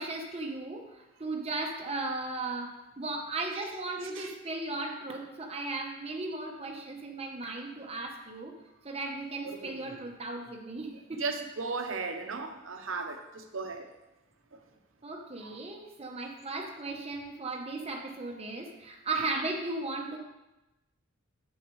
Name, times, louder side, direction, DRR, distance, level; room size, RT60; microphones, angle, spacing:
voice 1, 0.0-8.6 8.8-11.2 15.0-20.2, right 2 dB, 30° right, 1 dB, 1.0 m, -36 dB
voice 2, 9.5-9.9 11.2-13.9 14.5-14.6 15.4-15.5, right 4 dB, 70° right, 5 dB, 0.9 m, -36 dB
8.6 x 7.2 x 3.2 m, 1.0 s
head